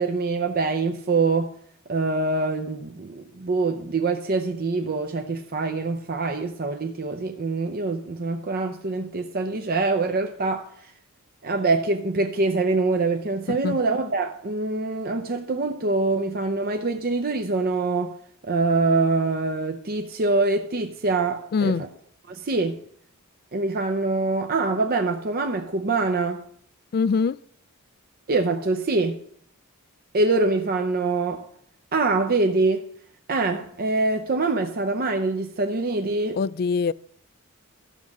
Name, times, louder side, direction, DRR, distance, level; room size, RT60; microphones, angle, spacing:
voice 1, 0.0-1.5 1.9-10.9 11.4-18.1 18.4-21.9 22.3-22.8 23.5-26.4 28.3-29.2 30.1-31.4 31.9-32.9 33.3-36.4, right 3 dB, 45° right, 0.7 m, -24 dB
voice 2, 13.5-13.8 21.5-21.8 26.9-27.4 36.3-36.9, left 5 dB, 45° left, 0.3 m, -23 dB
13.0 x 5.2 x 7.3 m
head